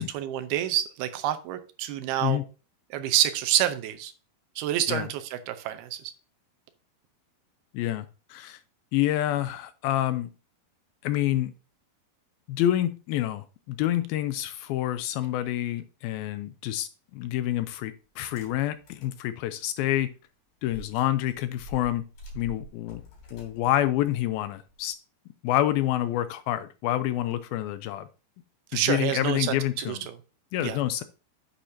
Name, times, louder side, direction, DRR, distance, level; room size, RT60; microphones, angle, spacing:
voice 1, 0.0-2.4 2.9-4.1 4.6-6.1 28.7-30.0 30.6-30.8, right 12 dB, 80° right, 2.7 m, -28 dB
voice 2, 7.7-8.6 8.9-10.3 11.0-11.5 12.5-20.1 20.6-22.0 22.4-23.0 23.3-24.9 25.4-28.1 28.7-30.0 30.5-31.0, left 13 dB, 80° left, 2.3 m, -28 dB
sound 1, 18.3-19.2 19.6-19.7 20.6-24.9, right 1 dB, 60° left, 4.6 m, -47 dB
10.0 x 8.5 x 2.7 m
omnidirectional pair, 4.6 m